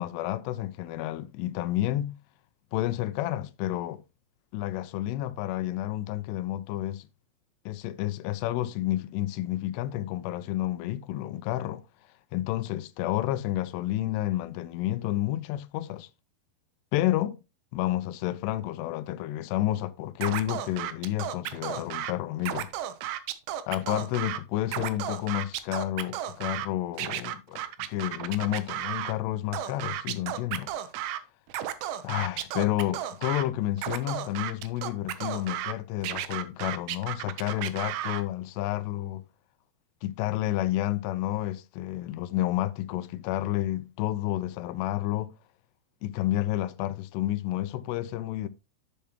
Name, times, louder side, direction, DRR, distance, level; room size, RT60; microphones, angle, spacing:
voice 1, 0.0-2.2 2.7-4.0 4.5-7.1 7.7-11.8 12.3-16.1 16.9-17.4 17.7-22.7 23.7-30.7 32.0-39.2 40.0-45.3 46.0-48.5, left 14 dB, 85° left, 2.6 m, -30 dB
Scratching (performance technique), 20.2-22.1 22.4-24.4 24.7-26.7 27.0-29.1 29.5-31.2 31.5-33.4 33.8-35.7 36.0-38.2, right 12 dB, 90° right, 2.8 m, -33 dB
7.5 x 6.8 x 2.9 m
omnidirectional pair, 4.8 m